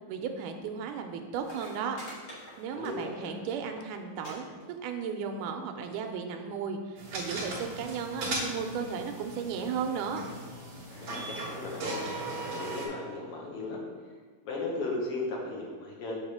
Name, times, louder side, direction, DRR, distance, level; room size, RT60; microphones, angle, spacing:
voice 1, 0.1-2.0 2.6-4.4 4.8-10.2, right 6 dB, 80° right, 5 dB, 2.1 m, -35 dB
sound 1, 1.1-1.2 1.4-3.3 3.6-3.9 4.2-4.3 4.6-5.1 5.9-6.0, equal, 45° left, 2.0 m, -47 dB
voice 2, 2.7-3.3 10.9-12.0 12.3-13.8 14.4-16.2, left 2 dB, 65° left, -2 dB, 1.5 m, -36 dB
sound 2, 7.0-12.9, right 2 dB, 50° right, 1.7 m, -37 dB
7.2 x 3.5 x 6.2 m, 1.5 s
omnidirectional pair, 3.8 m